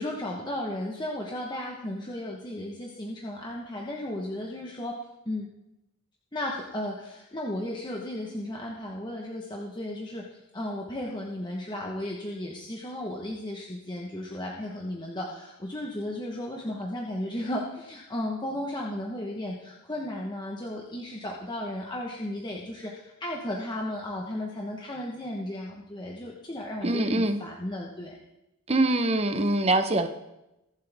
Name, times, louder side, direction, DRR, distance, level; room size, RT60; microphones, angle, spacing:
voice 1, 0.0-5.5 6.3-28.2, left 1 dB, 20° left, -1 dB, 1.2 m, -35 dB
voice 2, 26.8-27.4 28.7-30.1, right 2 dB, 30° right, 8 dB, 0.8 m, -24 dB
22.5 x 7.6 x 3.5 m, 0.91 s
head